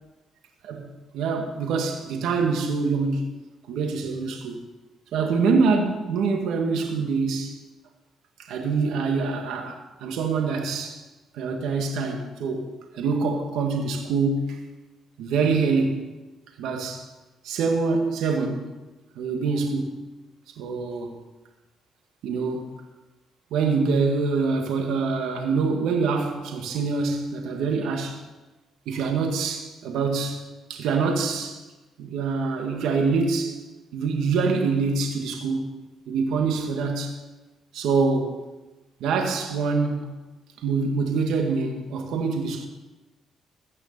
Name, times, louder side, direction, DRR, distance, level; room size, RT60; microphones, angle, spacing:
voice 1, 0.6-3.3 3.7-4.6 5.1-7.6 8.4-11.0 11.3-14.6 15.2-16.0 16.6-17.1 17.4-18.7 19.2-20.1 20.6-21.2 22.2-22.7 23.5-28.2 28.9-30.4 30.7-31.6 32.0-33.6 33.9-35.7 36.1-37.1 37.7-38.4 39.0-40.2 40.6-42.7, right 4 dB, 85° right, 1.8 m, -25 dB
16.0 x 6.5 x 6.7 m
cardioid pair, 90°, 0 cm